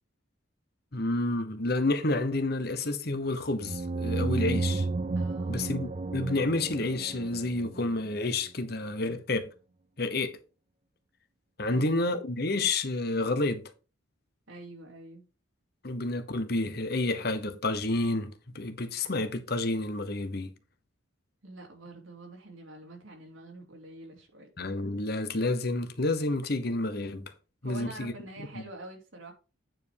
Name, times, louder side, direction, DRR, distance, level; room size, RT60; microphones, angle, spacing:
voice 1, 0.9-4.9 5.5-9.5 10.0-10.4 11.6-13.6 15.8-20.5 24.6-27.3 27.6-28.1, left 2 dB, 50° left, 1.0 m, -29 dB
sound 1, 3.6-8.2, right 3 dB, 30° right, 0.4 m, -32 dB
voice 2, 5.1-5.9 11.7-12.1 14.5-15.2 21.4-24.5 27.6-29.3, right 2 dB, 80° right, 3.1 m, -46 dB
9.1 x 5.3 x 4.6 m
head